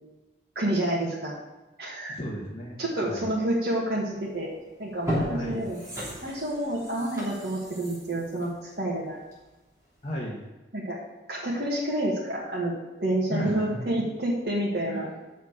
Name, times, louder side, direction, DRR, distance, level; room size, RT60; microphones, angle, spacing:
voice 1, 0.6-1.4 1.8-2.1 2.8-4.5 4.8-5.8 6.2-9.2 10.7-11.0 11.3-12.7 13.0-15.1, right 1 dB, 55° right, -5 dB, 1.8 m, -28 dB
voice 2, 2.1-3.3 5.3-5.6 10.0-10.4 13.3-14.1 14.9-15.2, equal, 30° left, -6 dB, 1.5 m, -34 dB
sound 1, 4.3-4.4 4.9-9.6 10.0-10.1, equal, 20° right, 3.4 m, -35 dB
7.3 x 6.4 x 7.3 m, 1.1 s
head